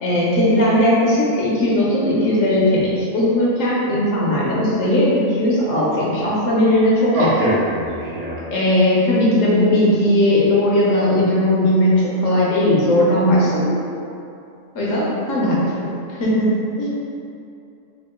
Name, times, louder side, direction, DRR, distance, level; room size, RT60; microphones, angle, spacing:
voice 1, 0.0-7.5 8.5-13.8 14.7-16.9, left 1 dB, 70° left, -6 dB, 1.1 m, -18 dB
voice 2, 7.1-8.5, right 1 dB, 40° right, -9 dB, 0.6 m, -23 dB
3.6 x 2.4 x 3.6 m, 2.6 s
omnidirectional pair, 1.4 m